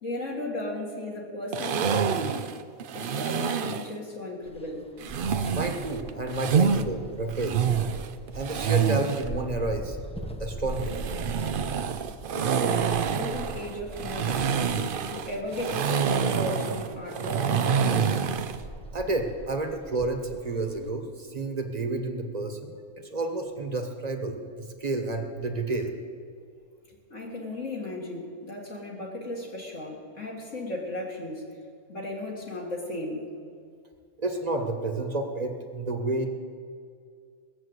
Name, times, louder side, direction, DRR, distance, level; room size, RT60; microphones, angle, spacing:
voice 1, 0.0-2.5 2.9-4.9 12.3-18.1 26.9-31.4 31.9-33.3, left 1 dB, 55° left, -3 dB, 2.5 m, -35 dB
sound 1, 1.5-3.9 5.0-6.8 7.3-9.3 10.7-18.6, right 7 dB, 55° right, 0.6 m, -27 dB
sound 2, 4.4-20.9, right 1 dB, 5° left, 0.6 m, -42 dB
voice 2, 5.5-7.6 8.3-10.0 10.4-11.0 18.9-26.0 34.2-36.3, right 2 dB, 30° right, 4 dB, 1.3 m, -30 dB
19.0 x 7.5 x 8.0 m, 2.2 s
omnidirectional pair, 1.5 m